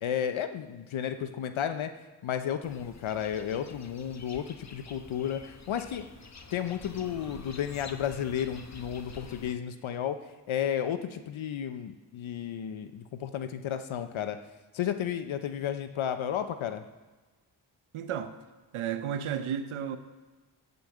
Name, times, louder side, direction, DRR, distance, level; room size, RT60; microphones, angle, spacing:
voice 1, 0.0-1.9 2.2-6.1 6.5-10.2 10.5-14.4 14.7-16.8, left 9 dB, 70° left, 9 dB, 1.0 m, -33 dB
sound 1, 2.6-9.6, left 4 dB, 35° left, 1.2 m, -48 dB
voice 2, 17.9-18.3 18.7-20.0, right 8 dB, 80° right, 10 dB, 1.0 m, -32 dB
15.5 x 5.5 x 7.9 m, 1.3 s
supercardioid pair, 40°, 49 cm